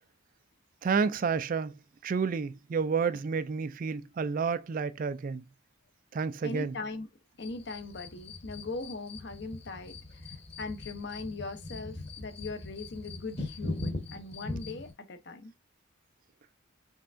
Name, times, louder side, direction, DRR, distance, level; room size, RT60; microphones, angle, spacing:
voice 1, 0.8-5.4 6.1-6.8, right 5 dB, 40° right, 0.3 m, -30 dB
voice 2, 6.4-7.1 7.4-15.5, left 3 dB, 55° left, 0.7 m, -40 dB
sound 1, 7.4-14.9, left 2 dB, 30° left, 1.1 m, -40 dB
5.4 x 3.4 x 2.5 m
head